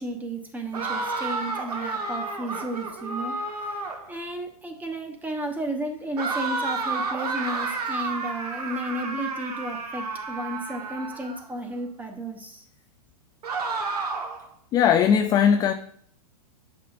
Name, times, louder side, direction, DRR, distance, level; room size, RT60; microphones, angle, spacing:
voice 1, 0.0-3.4 4.1-12.7, right 1 dB, 10° right, 1.0 m, -33 dB
sound 1, 0.7-4.1 6.2-11.4 13.4-14.5, right 3 dB, 85° right, 1.3 m, -31 dB
voice 2, 14.7-15.7, left 8 dB, 20° left, 0.3 m, -19 dB
8.3 x 5.6 x 2.5 m
hypercardioid pair, 125°, 20 cm